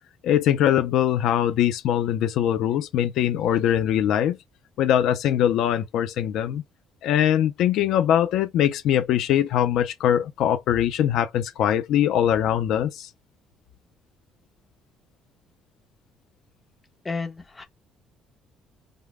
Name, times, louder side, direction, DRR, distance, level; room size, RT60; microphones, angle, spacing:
voice 1, 0.2-4.4 4.8-6.6 7.0-13.1, left 10 dB, 65° left, 0.6 m, -22 dB
voice 2, 17.0-17.6, left 4 dB, 15° left, 1.0 m, -31 dB
5.3 x 2.2 x 3.5 m
cardioid pair, 160°, 0 cm